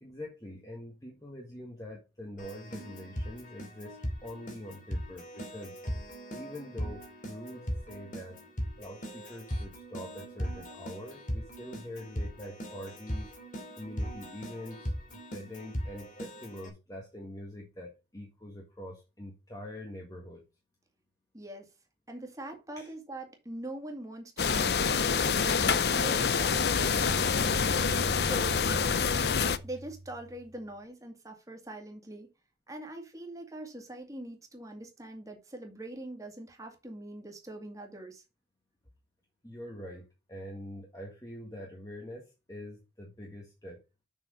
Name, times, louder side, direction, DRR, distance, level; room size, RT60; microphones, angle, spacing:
voice 1, 0.0-4.0 4.2-5.8 6.3-8.4 8.7-13.3 13.8-20.4 22.8-22.9 39.4-43.8, left 1 dB, 20° left, 1.7 m, -44 dB
Keyboard (musical), 2.4-16.7, equal, 45° left, 2.7 m, -39 dB
voice 2, 21.3-21.7 22.1-28.6 29.6-32.3 32.7-38.2, right 1 dB, 20° right, 2.2 m, -43 dB
sound 1, 24.4-29.6, left 6 dB, 65° left, 0.7 m, -26 dB
sound 2, 25.1-30.7, right 2 dB, ahead, 2.4 m, -43 dB
7.2 x 6.1 x 5.2 m
head